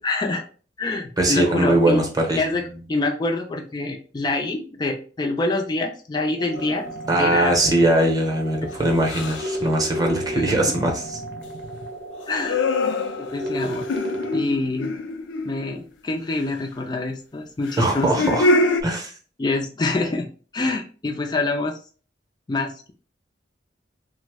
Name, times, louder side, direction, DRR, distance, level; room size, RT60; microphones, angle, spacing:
voice 1, 0.0-0.4 0.8-2.0 2.4-6.8 7.2-7.6 8.6-8.7 10.5-10.9 12.3-12.7 13.2-13.9 14.3-14.9 15.5-18.1 19.4-20.3 20.5-21.8 22.5-22.9, left 2 dB, 25° left, 2 dB, 0.3 m, -26 dB
voice 2, 1.2-2.4 7.1-11.2 17.8-18.6 18.8-19.1, right 1 dB, 20° right, 1 dB, 0.7 m, -21 dB
sound 1, 6.4-14.4, equal, 65° right, 0.6 m, -33 dB
sound 2, 6.6-6.9 9.0-9.6 12.2-15.8 17.6-18.8, left 2 dB, 85° left, 0.4 m, -25 dB
3.1 x 2.0 x 3.3 m, 0.39 s
head